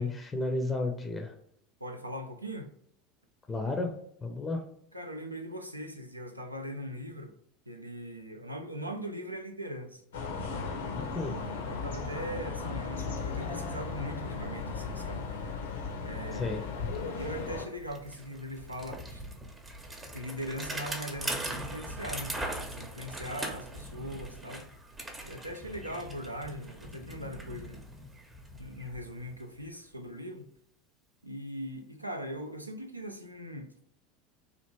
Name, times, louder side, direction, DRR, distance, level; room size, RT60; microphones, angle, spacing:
voice 1, 0.0-1.3 3.5-4.0 4.2-4.6 10.9-11.4 16.3-16.6, left 2 dB, 15° left, 0.5 m, -32 dB
voice 2, 1.8-2.7 4.9-7.3 7.7-10.0 10.8-15.3 16.0-16.7 17.2-19.2 20.1-22.3 22.6-24.7 25.3-27.8 28.6-30.5 31.2-33.7, equal, 90° right, 0.4 m, -40 dB
sound 1, 10.1-17.6, left 4 dB, 70° left, 0.6 m, -36 dB
Bicycle, 16.5-16.6 16.8-29.7, right 1 dB, 15° right, 0.7 m, -41 dB
3.3 x 2.4 x 3.0 m
figure-of-eight pair, 75°, 0 cm